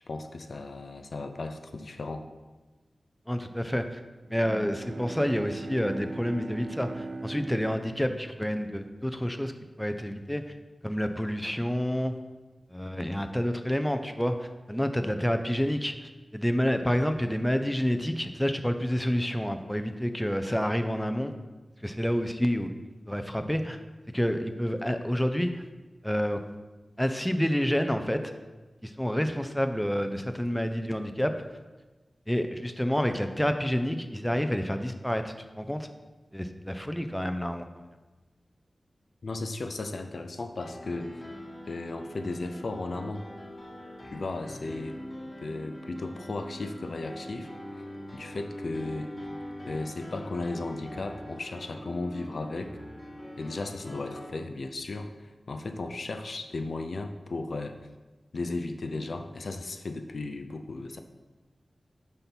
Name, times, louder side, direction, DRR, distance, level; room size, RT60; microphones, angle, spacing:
voice 1, 0.1-2.2 39.2-41.2 41.7-43.3 44.1-45.0 45.4-47.5 48.1-49.1 49.7-52.7 53.4-57.8 58.3-61.0, left 2 dB, 70° left, 6 dB, 0.5 m, -35 dB
voice 2, 3.3-3.8 4.3-9.5 9.8-10.5 10.8-12.1 12.7-21.3 21.8-22.7 23.1-23.8 24.1-25.6 26.0-26.4 27.0-28.3 28.8-31.4 32.3-35.9 36.3-37.8, equal, 5° left, 7 dB, 0.4 m, -28 dB
Bowed string instrument, 4.2-9.6, right 2 dB, 70° right, 0.3 m, -41 dB
Piano, 40.6-54.3, equal, 25° left, 1.3 m, -43 dB
5.3 x 4.2 x 5.9 m, 1.2 s
wide cardioid pair, 80°, 0 cm